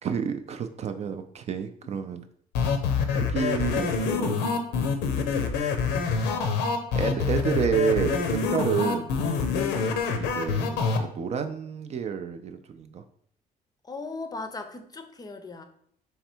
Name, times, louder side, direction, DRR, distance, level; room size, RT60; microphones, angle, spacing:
voice 1, 0.0-2.3 3.1-4.5 6.0-6.4 6.9-9.1 10.2-13.0, right 7 dB, 40° right, 9 dB, 0.4 m, -30 dB
sound 1, 2.6-11.0, left 5 dB, 90° left, 0.6 m, -26 dB
voice 2, 13.8-15.7, left 3 dB, 25° left, 7 dB, 0.5 m, -39 dB
3.4 x 3.2 x 4.4 m, 0.66 s
cardioid pair, 110°, 17 cm